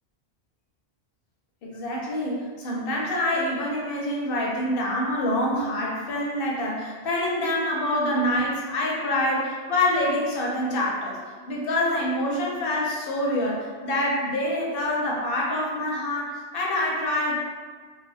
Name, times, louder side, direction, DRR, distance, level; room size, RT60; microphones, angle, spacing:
voice 1, 1.6-11.2 11.5-17.4, left 1 dB, 60° left, -3 dB, 0.7 m, -26 dB
2.4 x 2.4 x 2.6 m, 1.5 s
omnidirectional pair, 1.2 m